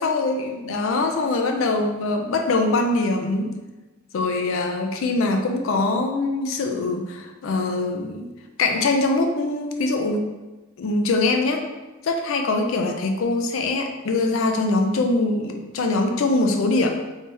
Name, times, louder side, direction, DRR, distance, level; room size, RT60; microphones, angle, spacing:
voice 1, 0.0-3.6 4.1-8.3 8.6-10.2 10.8-11.6 12.0-16.9, left 2 dB, 80° left, 4 dB, 0.4 m, -23 dB
3.3 x 2.7 x 3.3 m, 1.1 s
head